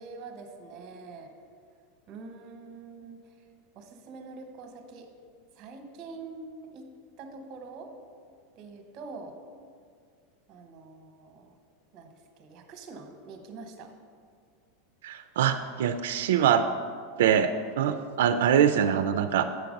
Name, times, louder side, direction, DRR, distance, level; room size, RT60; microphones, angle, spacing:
voice 1, 0.0-1.3 2.1-3.3 3.7-5.1 5.5-6.9 7.2-7.9 8.6-9.4 10.5-11.5 11.9-13.9, right 3 dB, 35° right, 5 dB, 0.9 m, -45 dB
voice 2, 15.0-16.6 17.2-19.4, right 8 dB, 85° right, 9 dB, 0.3 m, -24 dB
7.7 x 5.8 x 5.2 m, 2.1 s
supercardioid pair, 165°, 0 cm